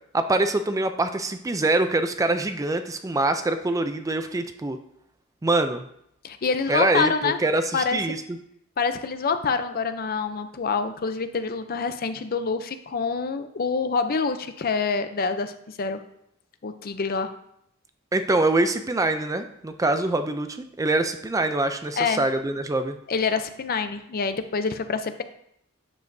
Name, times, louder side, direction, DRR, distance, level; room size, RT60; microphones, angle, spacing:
voice 1, 0.1-4.8 5.4-5.9 6.7-8.2 18.1-23.0, right 2 dB, 15° right, 8 dB, 0.4 m, -24 dB
voice 2, 6.2-7.4 7.7-8.0 8.8-16.0 16.6-17.3 22.0-22.2 23.1-25.2, left 5 dB, 45° left, 9 dB, 0.5 m, -26 dB
9.2 x 7.1 x 2.7 m, 0.74 s
head